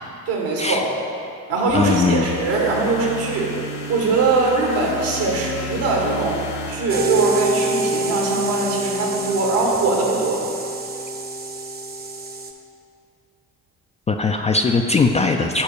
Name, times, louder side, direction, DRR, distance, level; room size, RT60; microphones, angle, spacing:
voice 1, 0.3-0.9 1.5-3.5 3.9-6.4 6.7-10.4, right 3 dB, 70° right, -1 dB, 1.8 m, -21 dB
sound 1, 1.7-7.9, left 1 dB, 70° left, 0.9 m, -33 dB
voice 2, 1.7-2.3 14.1-15.6, left 4 dB, 15° left, 4 dB, 0.4 m, -19 dB
sound 2, 6.9-12.5, right 2 dB, 25° right, 0.9 m, -26 dB
7.1 x 4.4 x 6.6 m, 2.5 s
hypercardioid pair, 50°, 42 cm